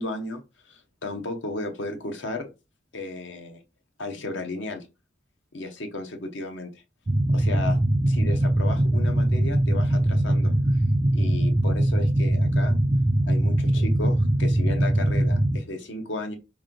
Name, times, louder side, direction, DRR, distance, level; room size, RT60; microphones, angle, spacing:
voice 1, 0.0-2.5 2.9-3.6 4.0-4.8 5.5-6.8 7.3-7.8 8.1-10.8 11.1-12.8 13.3-16.4, left 2 dB, 80° left, 5 dB, 0.9 m, -34 dB
sound 1, 7.1-15.6, right 1 dB, 25° right, 0.4 m, -22 dB
4.4 x 3.1 x 3.8 m, 0.28 s
head